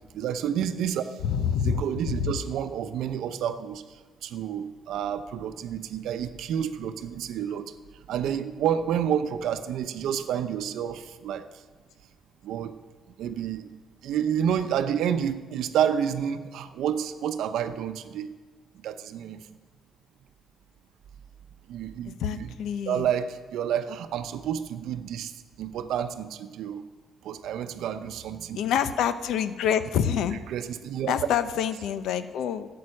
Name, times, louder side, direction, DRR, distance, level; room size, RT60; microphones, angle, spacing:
voice 1, 0.1-1.1 1.6-3.8 4.2-7.7 8.1-11.4 12.4-12.8 13.2-13.7 14.0-18.3 18.8-19.4 21.7-22.5 22.9-25.3 25.6-26.8 27.2-28.6 30.5-31.1, right 9 dB, 80° right, 10 dB, 0.7 m, -29 dB
voice 2, 1.2-1.8 2.1-2.3 22.0-23.1 28.5-30.4 31.1-32.7, left 8 dB, 80° left, 12 dB, 0.7 m, -27 dB
12.5 x 8.7 x 6.5 m, 1.4 s
cardioid pair, 90°, 0 cm